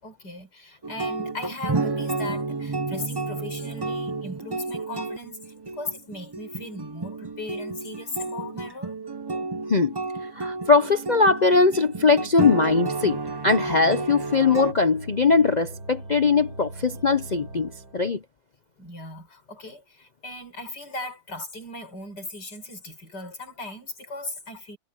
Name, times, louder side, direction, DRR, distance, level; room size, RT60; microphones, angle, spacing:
voice 1, 0.0-9.0 18.8-24.8, left 2 dB, 85° left, 6.4 m, -38 dB
sound 1, 0.8-14.7, right 3 dB, 40° right, 0.3 m, -31 dB
voice 2, 10.3-13.2 13.4-18.2, left 4 dB, 45° left, 0.5 m, -21 dB
sound 2, 11.4-18.2, right 2 dB, 80° right, 6.2 m, -43 dB
omnidirectional pair, 1.8 m